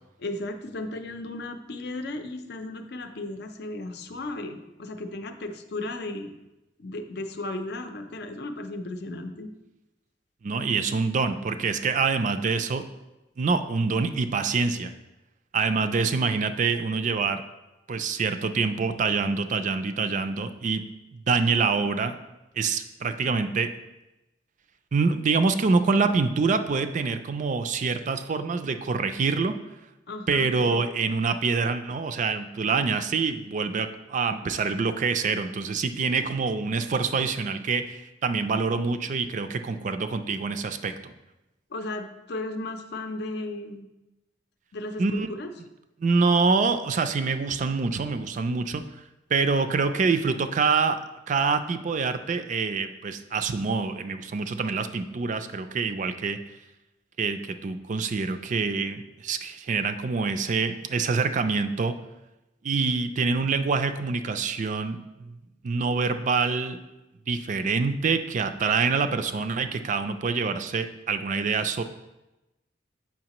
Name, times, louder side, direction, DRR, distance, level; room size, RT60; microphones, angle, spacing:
voice 1, 0.2-6.3 6.8-9.5 30.1-30.9 41.7-43.9 44.7-45.5, left 2 dB, 60° left, 7 dB, 0.6 m, -35 dB
voice 2, 10.4-12.9 13.4-14.9 15.5-17.4 17.9-20.8 21.1-22.2 22.6-23.7 24.9-29.6 30.3-41.1 45.0-45.3 46.0-48.8 49.3-51.0 51.3-56.4 57.2-62.0 62.6-65.4 65.6-66.8 67.3-71.8, right 4 dB, 45° right, 9 dB, 0.4 m, -26 dB
7.4 x 5.6 x 3.0 m, 1.0 s
head